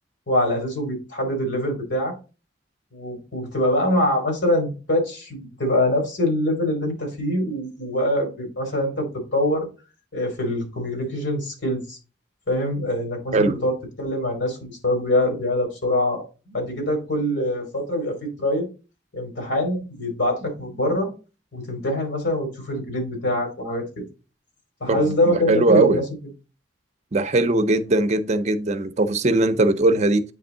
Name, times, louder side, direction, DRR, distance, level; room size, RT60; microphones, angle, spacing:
voice 1, 0.3-2.1 2.9-9.7 10.1-12.0 12.5-18.7 19.1-21.1 21.5-24.0 24.8-26.0, left 1 dB, 90° left, 3.1 m, -24 dB
voice 2, 24.9-26.0 27.1-30.2, right 2 dB, 40° right, 0.6 m, -20 dB
8.5 x 3.5 x 3.8 m
head